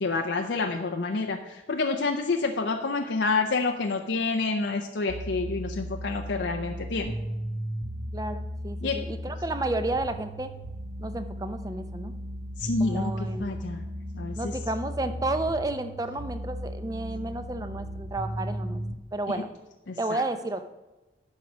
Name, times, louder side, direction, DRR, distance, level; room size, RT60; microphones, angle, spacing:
voice 1, 0.0-7.1 8.8-9.0 12.6-13.1 13.4-13.8 14.1-14.5 19.9-20.2, left 3 dB, 90° left, 4 dB, 0.6 m, -28 dB
sound 1, 5.1-18.9, equal, 60° right, 1.1 m, -35 dB
voice 2, 8.1-10.5 11.0-12.1 12.8-13.5 14.4-18.8 19.1-19.5 20.0-20.7, right 2 dB, 20° right, 9 dB, 0.5 m, -32 dB
11.5 x 4.7 x 6.2 m, 1.1 s
head